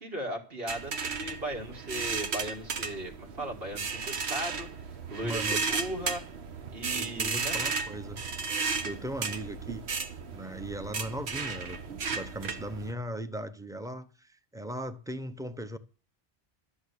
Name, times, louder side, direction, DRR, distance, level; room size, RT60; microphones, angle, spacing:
voice 1, 0.0-4.7 5.1-6.2 6.7-7.6, right 1 dB, 65° right, 2.4 m, -37 dB
sound 1, 0.7-12.9, right 5 dB, 80° right, 1.3 m, -34 dB
voice 2, 5.2-5.6 6.9-8.2 8.8-9.8 10.3-15.8, right 1 dB, 5° right, 0.8 m, -38 dB
12.5 x 6.6 x 8.3 m
omnidirectional pair, 1.1 m